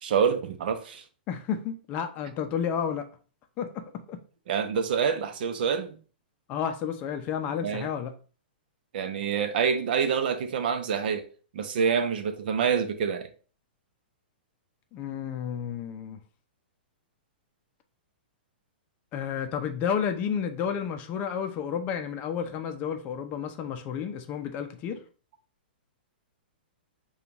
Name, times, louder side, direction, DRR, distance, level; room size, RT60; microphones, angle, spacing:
voice 1, 0.0-1.0 4.5-6.0 7.6-7.9 8.9-11.3 11.5-13.3, right 6 dB, 60° right, 0.7 m, -26 dB
voice 2, 1.3-3.1 3.6-4.2 6.5-8.1 14.9-16.2 19.1-25.0, left 8 dB, 30° left, 0.5 m, -31 dB
6.7 x 2.4 x 2.9 m
hypercardioid pair, 145°, 6 cm